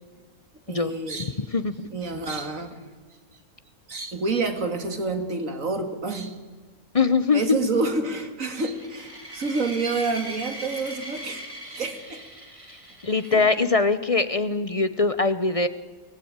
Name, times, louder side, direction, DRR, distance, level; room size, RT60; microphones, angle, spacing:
voice 1, 0.7-1.4 1.9-2.8 3.9-6.3 7.3-12.2 13.3-13.5, right 3 dB, 60° right, 7 dB, 2.4 m, -28 dB
voice 2, 6.9-7.6 13.0-15.7, left 4 dB, 35° left, 12 dB, 0.6 m, -22 dB
sound 1, 8.6-13.8, right 1 dB, 20° right, 3.4 m, -40 dB
24.0 x 17.0 x 8.8 m, 1.4 s
omnidirectional pair, 1.6 m